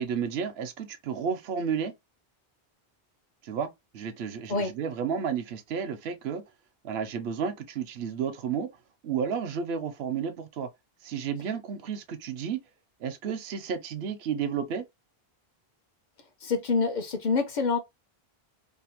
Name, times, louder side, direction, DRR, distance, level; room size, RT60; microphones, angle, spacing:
voice 1, 0.0-1.9 3.4-3.7 3.9-6.4 6.8-8.7 9.0-10.7 11.0-12.6 13.0-14.8, right 7 dB, 85° right, 0.8 m, -32 dB
voice 2, 16.4-17.8, left 4 dB, 55° left, 0.7 m, -26 dB
2.7 x 2.2 x 2.8 m
omnidirectional pair, 1.0 m